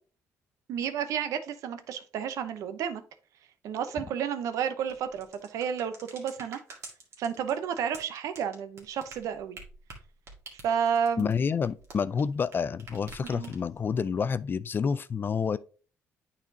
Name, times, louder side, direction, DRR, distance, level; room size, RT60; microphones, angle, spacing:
voice 1, 0.7-3.0 3.6-6.6 7.2-9.6 10.6-11.3 13.2-13.5, right 8 dB, 85° right, 0.7 m, -31 dB
sound 1, 4.8-12.5 12.8-13.8, right 3 dB, 55° right, 1.9 m, -47 dB
voice 2, 11.2-15.6, left 6 dB, 40° left, 0.4 m, -28 dB
9.1 x 4.2 x 2.8 m
cardioid pair, 90°, 6 cm